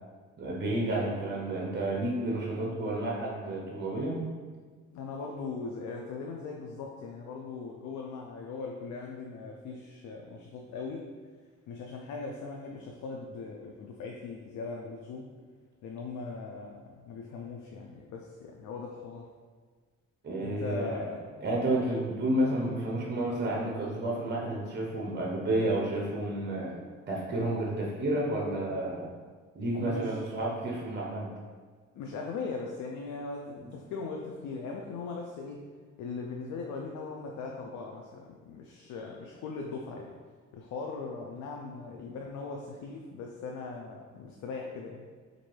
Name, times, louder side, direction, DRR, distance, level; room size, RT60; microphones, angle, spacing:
voice 1, 0.4-4.2 20.2-21.0 21.4-26.7 27.1-29.1 29.5-31.3 33.6-33.7, right 1 dB, 35° right, -2 dB, 0.9 m, -31 dB
voice 2, 4.9-11.1 11.7-15.3 15.8-19.3 20.4-21.3 29.7-30.2 31.9-35.6 36.0-40.1 40.5-45.1, left 4 dB, 75° left, 0 dB, 0.5 m, -39 dB
4.4 x 2.5 x 3.2 m, 1.5 s
cardioid pair, 90°, 30 cm